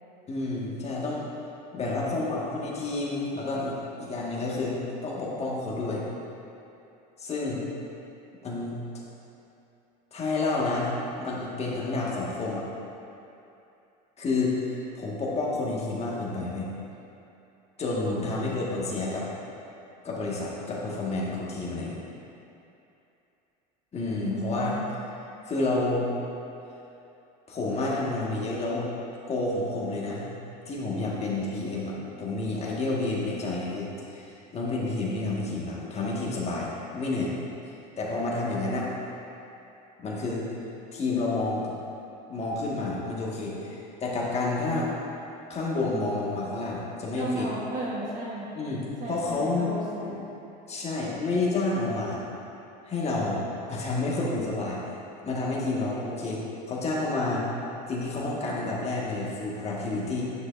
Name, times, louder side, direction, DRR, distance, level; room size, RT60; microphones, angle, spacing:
voice 1, 0.3-1.2 1.7-6.0 7.2-7.6 8.4-8.8 10.1-12.6 14.2-16.7 17.8-19.3 20.0-22.0 23.9-24.7 25.4-26.1 27.5-28.9 29.3-30.3 30.7-37.3 38.0-38.9 40.0-40.5 40.9-41.7 42.3-44.9 45.5-47.5 48.5-49.7 50.0-50.2 50.7-52.2 52.8-53.4 53.7-54.8 55.2-56.4 56.7-57.4 57.9-60.2, left 2 dB, 30° left, -4 dB, 1.6 m, -29 dB
voice 2, 18.0-18.4 24.2-24.8 47.2-48.5 49.0-50.2, right 1 dB, 40° right, -6 dB, 1.1 m, -34 dB
9.5 x 6.3 x 2.5 m, 2.8 s
supercardioid pair, 100°, 21 cm